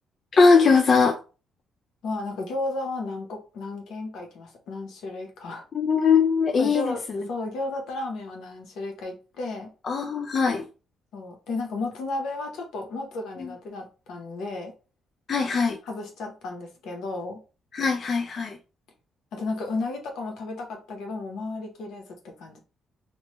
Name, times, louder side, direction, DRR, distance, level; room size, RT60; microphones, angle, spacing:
voice 1, 0.3-1.2 5.7-6.9 9.8-10.7 13.4-13.5 15.3-15.8 17.7-18.6, left 5 dB, 50° left, 0.4 m, -20 dB
voice 2, 2.0-5.6 6.6-7.0 7.3-9.7 11.1-14.7 15.8-17.4 19.3-22.6, left 2 dB, 80° left, 0.8 m, -33 dB
3.0 x 2.2 x 3.0 m
cardioid pair, 90°, 0 cm